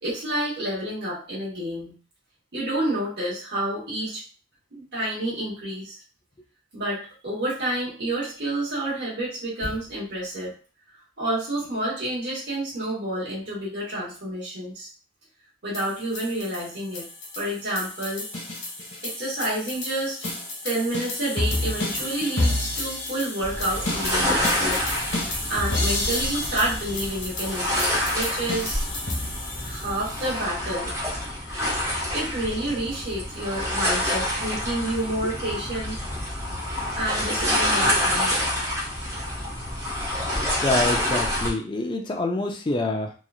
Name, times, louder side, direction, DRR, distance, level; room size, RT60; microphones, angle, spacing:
voice 1, 0.0-1.9 2.5-4.2 4.7-6.0 6.7-10.5 11.2-14.9 15.6-17.0 17.4-18.3 19.0-20.2 20.6-24.8 25.1-28.9 29.6-30.9 32.1-36.0 37.0-38.4, right 1 dB, 60° right, -7 dB, 1.1 m, -29 dB
sound 1, 15.7-30.3, left 2 dB, 80° left, 1.2 m, -30 dB
sound 2, 23.4-41.5, left 1 dB, 15° right, 0.7 m, -27 dB
voice 2, 40.6-43.1, left 2 dB, 25° left, 3 dB, 0.3 m, -26 dB
2.9 x 2.3 x 2.3 m, 0.37 s
head